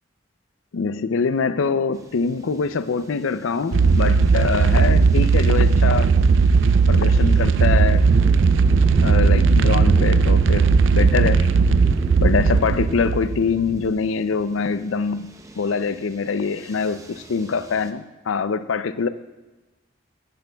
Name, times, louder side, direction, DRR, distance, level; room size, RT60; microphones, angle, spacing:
voice 1, 0.7-6.1 6.9-8.1 9.0-11.5 12.2-15.3 15.6-19.1, left 5 dB, 90° left, 13 dB, 0.5 m, -24 dB
sound 1, 2.0-17.9, right 1 dB, 15° right, 0.6 m, -33 dB
sound 2, 3.7-13.8, right 5 dB, 75° right, 0.4 m, -17 dB
16.5 x 10.5 x 2.3 m, 1.2 s
head